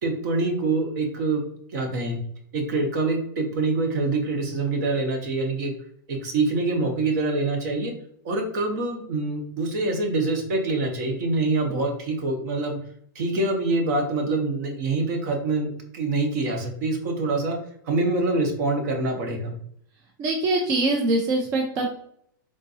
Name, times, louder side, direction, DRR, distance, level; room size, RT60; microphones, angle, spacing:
voice 1, 0.0-1.4 1.7-2.2 2.5-5.7 6.1-7.9 8.2-12.8 13.1-17.6 17.8-19.5, right 2 dB, 50° right, 3 dB, 1.0 m, -25 dB
voice 2, 20.2-21.9, right 2 dB, 25° right, 1 dB, 0.4 m, -23 dB
3.7 x 2.6 x 2.6 m, 0.66 s
supercardioid pair, 155°, 11 cm